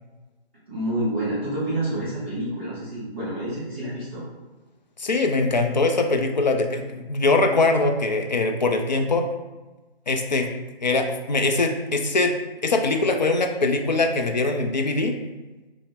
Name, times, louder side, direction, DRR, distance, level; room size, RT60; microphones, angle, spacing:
voice 1, 0.7-4.2, right 1 dB, 10° right, -13 dB, 0.8 m, -28 dB
voice 2, 5.0-9.2 10.1-10.5 10.8-12.3 12.6-15.1, left 3 dB, 45° left, 4 dB, 0.4 m, -22 dB
5.7 x 2.1 x 3.5 m, 1.2 s
hypercardioid pair, 170°, 32 cm